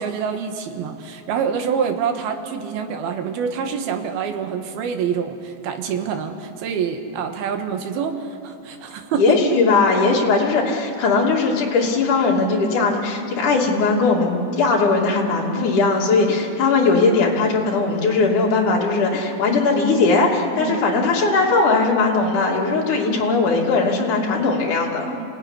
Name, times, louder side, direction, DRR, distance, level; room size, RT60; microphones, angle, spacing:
voice 1, 0.0-9.4 20.6-20.8 24.4-24.5 25.1-25.3, right 7 dB, 80° right, 6 dB, 3.4 m, -26 dB
voice 2, 9.2-25.2, left 3 dB, 55° left, -2 dB, 4.2 m, -19 dB
27.0 x 18.0 x 9.9 m, 2.6 s
omnidirectional pair, 4.3 m